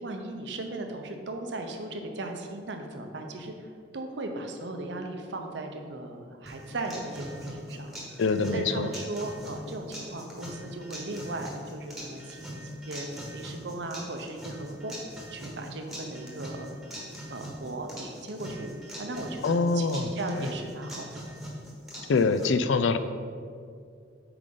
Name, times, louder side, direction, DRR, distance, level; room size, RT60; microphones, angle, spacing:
voice 1, 0.0-3.7 3.9-8.2 8.5-13.1 13.3-15.0 15.3-16.7 17.3-18.7 19.0-21.3, right 2 dB, 70° right, 4 dB, 0.7 m, -37 dB
sound 1, 6.5-22.5, equal, ahead, 1.2 m, -42 dB
voice 2, 8.2-8.9 19.4-20.1 20.4-20.5 22.1-23.0, left 4 dB, 80° left, 11 dB, 0.4 m, -24 dB
7.7 x 4.9 x 3.8 m, 2.2 s
head